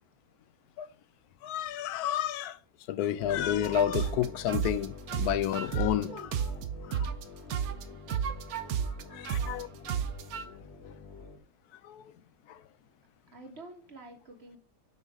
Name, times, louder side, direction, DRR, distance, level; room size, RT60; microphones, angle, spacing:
voice 1, 1.4-2.6 2.9-6.5 6.8-7.1 9.1-9.7 11.8-12.1 12.5-12.6, left 11 dB, 90° left, 1.1 m, -31 dB
sound 1, 3.2-11.4, left 3 dB, 45° left, 1.6 m, -47 dB
sound 2, 3.6-7.2 7.5-10.5, right 8 dB, 75° right, 1.2 m, -32 dB
voice 2, 9.1-9.8 13.3-14.6, right 2 dB, 45° right, 1.6 m, -49 dB
6.2 x 5.5 x 3.6 m
omnidirectional pair, 1.6 m